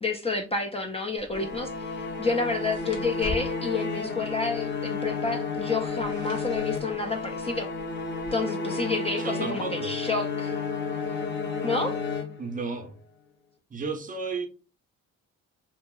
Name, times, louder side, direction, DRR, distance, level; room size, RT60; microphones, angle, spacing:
voice 1, 0.0-7.7 8.3-10.6 11.6-12.0, left 3 dB, 20° left, 0.3 m, -30 dB
sound 1, 1.2-8.3, left 1 dB, 75° left, 1.1 m, -45 dB
sound 2, 1.3-12.8, left 4 dB, 40° left, 0.8 m, -32 dB
voice 2, 9.2-9.9 12.4-13.0 13.7-14.5, right 4 dB, 25° right, 0.6 m, -33 dB
2.8 x 2.7 x 2.2 m
cardioid pair, 90°, 30 cm